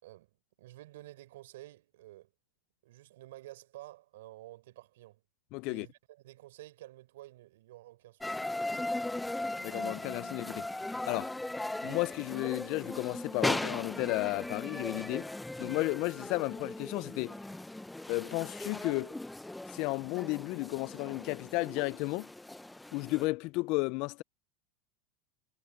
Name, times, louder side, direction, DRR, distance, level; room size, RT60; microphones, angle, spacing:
voice 1, 0.0-2.3 2.8-5.2 5.6-8.4, right 16 dB, 80° right, 4.3 m, -51 dB
voice 2, 5.5-5.9 9.6-10.7 11.1-11.3 11.8-15.3 15.6-17.4 18.1-19.2 19.7-22.3 22.9-24.2, left 24 dB, 60° left, 0.5 m, -33 dB
sound 1, 8.2-23.3, left 2 dB, 5° left, 0.8 m, -38 dB
supercardioid pair, 115°, 0 cm